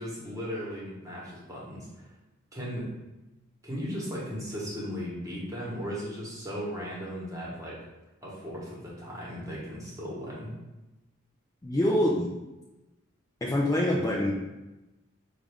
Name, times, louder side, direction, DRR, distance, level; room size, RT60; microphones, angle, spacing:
voice 1, 0.0-2.1 2.5-2.9 3.6-7.8 8.2-10.6, equal, 15° right, -6 dB, 1.1 m, -36 dB
voice 2, 11.6-12.3 13.4-14.3, left 1 dB, 15° left, -4 dB, 0.4 m, -25 dB
5.3 x 2.4 x 3.4 m, 1.0 s
head